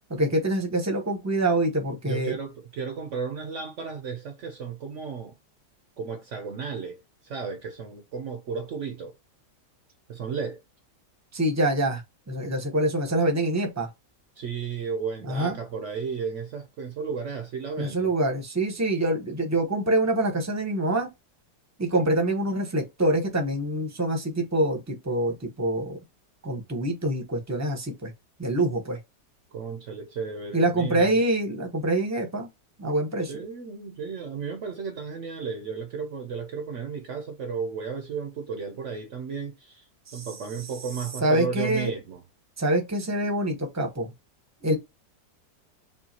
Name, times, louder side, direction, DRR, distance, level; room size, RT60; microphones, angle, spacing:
voice 1, 0.1-2.4 11.3-13.9 15.3-15.5 17.8-21.1 21.8-26.0 26.4-28.1 28.4-29.0 30.5-32.5 32.8-33.4 40.1-40.3 41.2-41.9 42.6-44.1 44.6-44.8, right 1 dB, 15° right, 0.5 m, -25 dB
voice 2, 2.0-5.4 6.0-9.1 10.1-10.6 14.4-18.1 29.5-31.1 33.3-39.8 40.1-42.2, right 6 dB, 65° right, 0.7 m, -34 dB
5.4 x 2.4 x 2.8 m
omnidirectional pair, 1.9 m